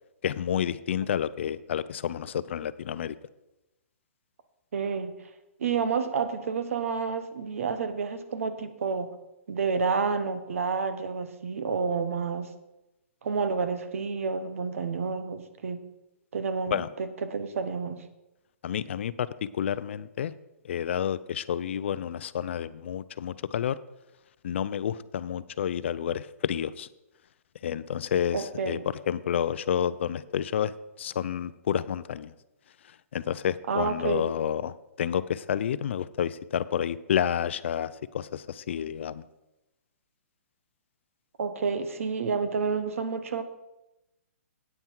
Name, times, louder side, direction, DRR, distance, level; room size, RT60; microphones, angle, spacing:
voice 1, 0.2-3.2 16.7-16.9 18.6-20.3 20.6-23.8 24.4-26.9 27.6-28.8 29.1-30.7 31.0-32.3 33.1-39.2, left 9 dB, 50° left, 16 dB, 0.4 m, -30 dB
voice 2, 4.7-5.1 5.6-9.1 9.5-12.5 13.2-15.8 16.3-18.0 28.3-28.8 33.7-34.3 41.4-43.4, right 5 dB, 65° right, 10 dB, 1.1 m, -29 dB
9.2 x 9.1 x 4.6 m, 0.94 s
hypercardioid pair, 165°, 8 cm